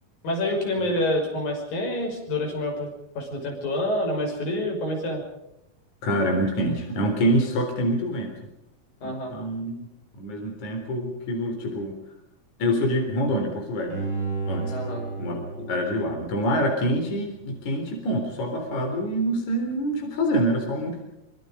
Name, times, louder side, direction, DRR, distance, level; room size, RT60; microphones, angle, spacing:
voice 1, 0.2-2.9 3.2-5.2 9.0-9.3 14.7-15.0, left 1 dB, 70° left, 2 dB, 7.8 m, -27 dB
voice 2, 6.0-8.3 9.0-9.9 10.1-12.0 12.6-14.0 14.5-14.7 15.2-21.0, equal, 55° left, 3 dB, 5.3 m, -26 dB
Bowed string instrument, 13.9-17.0 17.4-17.5, right 4 dB, 35° left, 6.3 m, -33 dB
26.0 x 23.0 x 5.2 m, 0.89 s
omnidirectional pair, 4.2 m